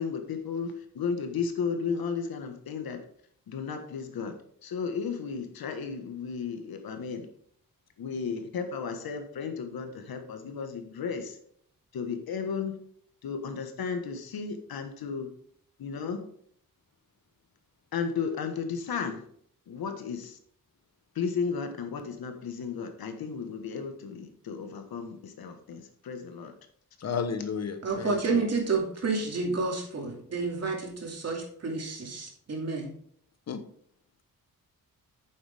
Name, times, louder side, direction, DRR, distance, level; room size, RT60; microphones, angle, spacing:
voice 1, 0.0-3.1 3.5-7.3 8.0-11.4 11.9-12.8 13.2-15.3 15.8-16.3 17.9-19.3 19.7-20.4 21.1-26.5, left 6 dB, 80° left, 1.5 m, -34 dB
voice 2, 27.0-28.4 33.5-33.6, left 6 dB, 45° left, 1.0 m, -33 dB
voice 3, 27.8-32.9, right 4 dB, 45° right, 2.5 m, -30 dB
9.0 x 7.2 x 3.5 m
wide cardioid pair, 155°, 35 cm